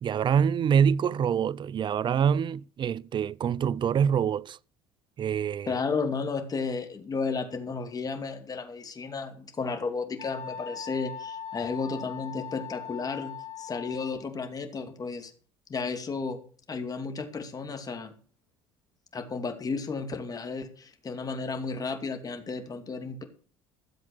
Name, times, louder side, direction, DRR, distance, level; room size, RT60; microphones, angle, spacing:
voice 1, 0.0-4.6 5.2-5.8, right 8 dB, 40° right, 0.5 m, -25 dB
voice 2, 5.7-15.3 15.7-16.4 16.7-18.1 19.1-23.2, left 4 dB, 30° left, 2.6 m, -33 dB
Wind instrument woodwind instrument, 10.2-14.3, left 8 dB, 70° left, 2.3 m, -40 dB
13.5 x 7.8 x 6.5 m
hypercardioid pair, 75°, 13 cm